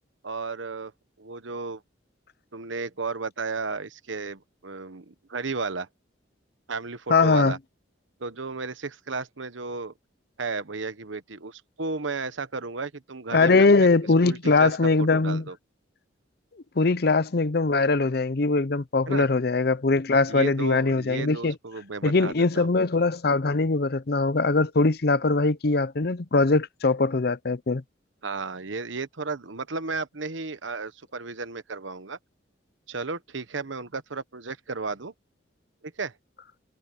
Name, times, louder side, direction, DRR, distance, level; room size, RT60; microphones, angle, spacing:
voice 1, 0.2-0.9 1.2-1.8 2.5-5.9 6.7-7.6 8.2-9.9 10.4-13.9 14.2-14.7 15.0-15.6 19.1-19.3 20.3-22.7 28.2-32.2 32.9-35.1 36.0-36.1, right 4 dB, 85° right, 1.2 m, -33 dB
voice 2, 7.1-7.5 13.3-15.4 16.8-21.6 22.0-27.8, left 3 dB, 55° left, 0.6 m, -21 dB
head